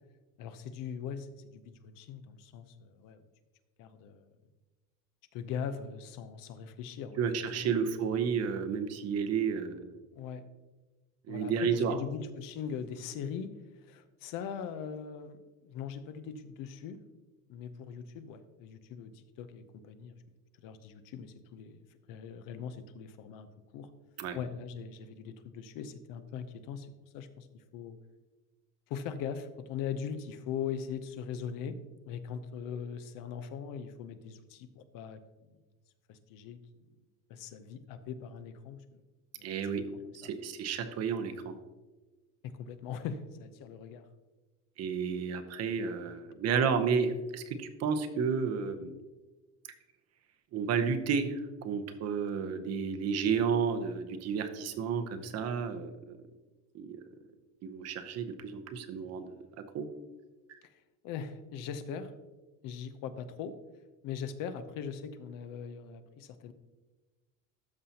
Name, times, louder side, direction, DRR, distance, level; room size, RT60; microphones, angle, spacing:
voice 1, 0.4-3.2 3.8-4.3 5.3-7.3 7.5-7.8 10.1-10.4 11.3-13.5 13.8-17.0 17.5-20.1 20.6-23.5 23.7-23.9 24.3-28.0 28.9-31.8 32.1-35.2 36.1-36.6 37.3-38.8 39.4-39.8 40.2-40.3 42.4-44.1 60.6-62.1 62.6-63.6 64.0-66.5, left 7 dB, 70° left, 11 dB, 0.8 m, -41 dB
voice 2, 7.2-10.0 11.3-12.0 24.2-24.4 39.4-39.8 40.1-41.6 44.8-48.9 50.5-51.3 51.6-56.2 56.7-57.0 57.6-59.4 59.7-59.9, right 6 dB, 50° right, 8 dB, 0.8 m, -31 dB
13.0 x 5.6 x 2.8 m, 1.2 s
cardioid pair, 150°, 34 cm